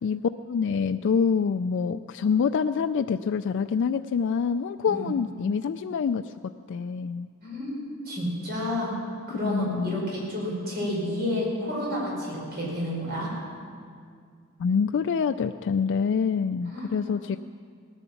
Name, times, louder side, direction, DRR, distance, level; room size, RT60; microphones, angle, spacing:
voice 1, 0.0-6.3 6.7-7.3 9.4-10.1 14.6-17.4, left 6 dB, 60° left, 9 dB, 0.3 m, -26 dB
voice 2, 7.4-9.0 9.3-13.3 16.7-16.9, left 1 dB, 45° right, -4 dB, 5.1 m, -30 dB
18.0 x 10.5 x 7.1 m, 2.2 s
head